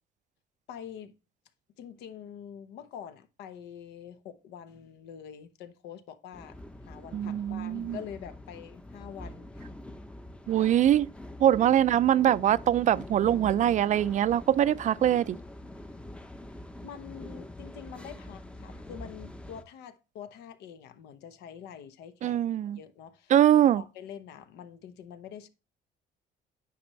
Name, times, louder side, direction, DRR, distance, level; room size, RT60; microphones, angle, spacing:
voice 1, 0.7-1.1 1.8-6.6 6.9-9.7 10.8-10.9 16.8-22.4 22.8-23.3 23.7-25.5, left 8 dB, 85° left, 1.0 m, -45 dB
sound 1, 6.3-19.6, left 1 dB, 5° left, 0.6 m, -45 dB
voice 2, 7.1-8.0 10.5-11.1 11.4-15.4 22.2-22.8 23.3-23.8, right 11 dB, 45° right, 0.4 m, -23 dB
9.5 x 5.0 x 3.1 m
cardioid pair, 110°, 17 cm